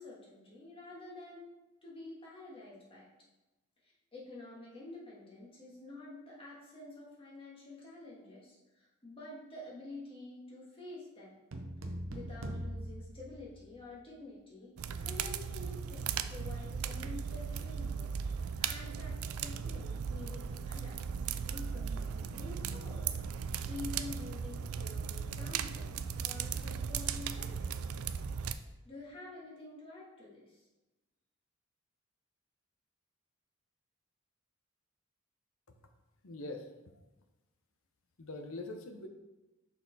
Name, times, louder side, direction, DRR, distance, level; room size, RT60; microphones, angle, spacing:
voice 1, 0.0-1.5 1.8-3.1 3.8-11.3 11.8-23.1 23.6-27.9 28.8-30.7, left 2 dB, 25° left, -6 dB, 1.8 m, -49 dB
sound 1, 11.5-14.1, equal, 65° right, 0.8 m, -42 dB
sound 2, 14.8-28.5, right 6 dB, 90° right, 0.4 m, -37 dB
voice 2, 36.2-36.7 38.2-39.1, left 2 dB, 75° left, 5 dB, 0.8 m, -42 dB
6.1 x 4.3 x 4.1 m, 1.0 s
head